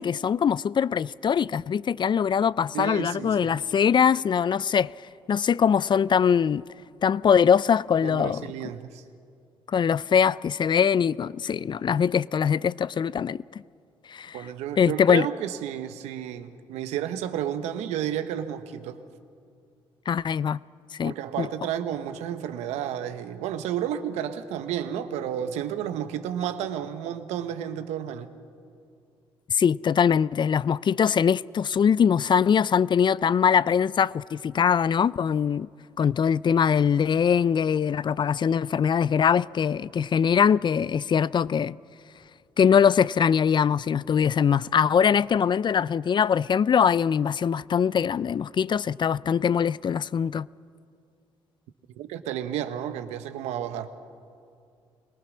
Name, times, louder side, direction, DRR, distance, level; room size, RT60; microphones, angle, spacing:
voice 1, 0.0-4.9 5.3-6.6 7.0-8.4 9.7-13.4 14.1-14.4 14.8-15.3 20.1-20.6 20.9-21.5 29.5-35.7 36.0-41.8 42.6-50.5, left 7 dB, 45° left, 0.4 m, -22 dB
voice 2, 2.7-3.6 8.0-9.0 14.3-19.0 21.0-28.3 52.0-53.9, right 10 dB, 85° right, 1.0 m, -31 dB
24.5 x 18.5 x 6.2 m
supercardioid pair, 55°, 11 cm